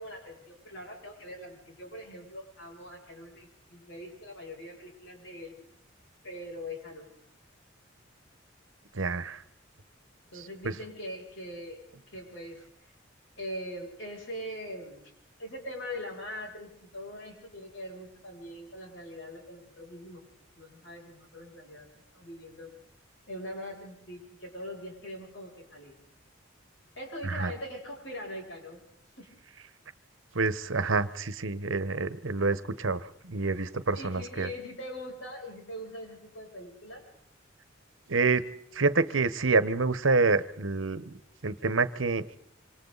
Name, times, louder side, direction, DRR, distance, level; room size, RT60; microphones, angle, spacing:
voice 1, 0.0-5.6 6.2-7.1 10.3-11.8 12.1-12.9 13.4-15.1 15.4-20.2 20.6-21.9 22.1-22.7 23.3-25.9 27.0-28.8 29.2-29.3 33.9-37.0, left 1 dB, 70° left, 0 dB, 7.4 m, -42 dB
voice 2, 8.9-9.4 10.6-10.7 27.2-27.5 30.3-34.5 38.1-38.5 38.7-41.1 41.4-42.2, right 3 dB, 85° right, 14 dB, 1.1 m, -27 dB
26.5 x 26.0 x 4.1 m, 0.72 s
head